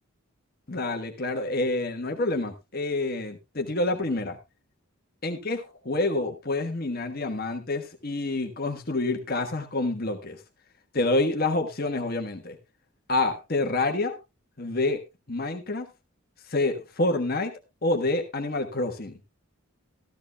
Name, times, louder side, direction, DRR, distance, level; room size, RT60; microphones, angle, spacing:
voice 1, 0.7-4.4 5.2-10.4 10.9-12.6 13.1-14.2 14.6-15.0 15.3-15.9 16.4-19.2, left 2 dB, 45° left, 5 dB, 1.3 m, -28 dB
14.5 x 13.5 x 2.3 m, 0.23 s
head